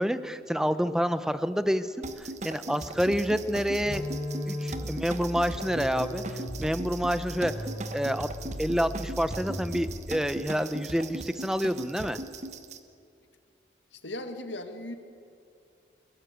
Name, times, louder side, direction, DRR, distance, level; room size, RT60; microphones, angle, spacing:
voice 1, 0.0-1.9 2.4-4.0 4.5-6.2 6.6-7.5 7.9-8.3 8.6-12.2, equal, 5° right, 12 dB, 0.9 m, -28 dB
sound 1, 1.3-10.9, equal, 85° right, 7.9 m, -54 dB
sound 2, 2.0-12.8, right 2 dB, 40° right, 1.3 m, -39 dB
sound 3, 3.0-10.1, left 1 dB, 65° left, 4.4 m, -37 dB
voice 2, 13.9-14.9, left 1 dB, 85° left, 6 dB, 2.2 m, -38 dB
30.0 x 19.0 x 8.2 m, 2.4 s
head